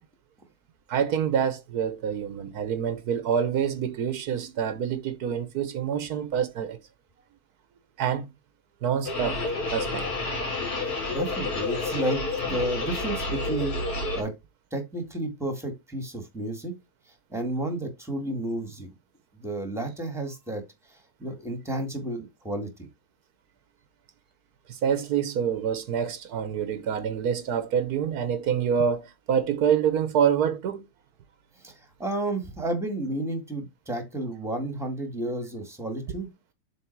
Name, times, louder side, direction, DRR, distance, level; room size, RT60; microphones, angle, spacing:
voice 1, 0.9-6.8 8.0-8.3 8.8-9.4 9.7-10.1 24.7-30.8, right 8 dB, 80° right, 1.4 m, -26 dB
sound 1, 9.0-14.2, left 2 dB, 75° left, 2.6 m, -29 dB
voice 2, 10.8-14.3 14.7-16.7 17.3-18.9 19.4-20.6 20.9-22.9 31.6-31.7 32.0-36.3, right 1 dB, ahead, 1.8 m, -32 dB
7.3 x 3.7 x 4.6 m
omnidirectional pair, 1.6 m